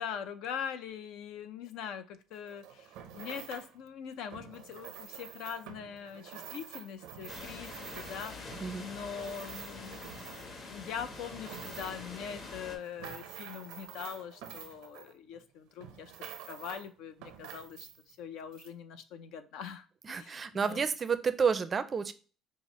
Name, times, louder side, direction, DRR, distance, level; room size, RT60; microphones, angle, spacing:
voice 1, 0.0-16.1 16.5-20.9, left 8 dB, 75° left, 10 dB, 0.5 m, -42 dB
sound 1, 2.3-3.8 4.3-10.7 11.1-12.1 12.6-15.4 15.8-16.9 17.2-18.2 18.5-18.7, right 9 dB, 85° right, 0.6 m, -48 dB
sound 2, 7.3-12.8, left 3 dB, 50° left, 1.2 m, -45 dB
voice 2, 20.0-22.1, right 6 dB, 35° right, 12 dB, 0.4 m, -30 dB
5.5 x 2.0 x 3.0 m, 0.37 s
supercardioid pair, 95°, 0 cm